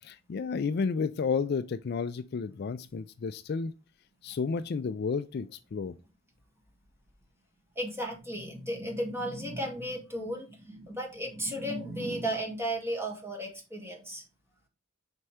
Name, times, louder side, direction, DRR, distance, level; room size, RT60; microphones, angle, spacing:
voice 1, 0.0-3.7 4.2-6.0, left 5 dB, 50° left, 0.4 m, -31 dB
voice 2, 7.8-14.2, right 1 dB, 10° right, 1.9 m, -34 dB
5.5 x 4.4 x 4.8 m
head